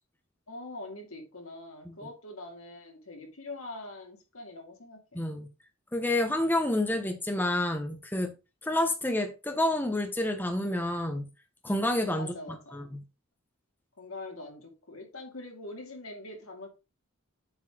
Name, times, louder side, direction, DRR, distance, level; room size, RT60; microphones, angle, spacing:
voice 1, 0.5-5.3 12.1-12.9 14.0-16.7, left 2 dB, 85° left, 2.3 m, -43 dB
voice 2, 5.1-5.5 5.9-8.3 8.6-11.3 11.6-12.3 12.7-13.0, left 1 dB, 10° left, 1.0 m, -28 dB
7.8 x 4.0 x 4.8 m
head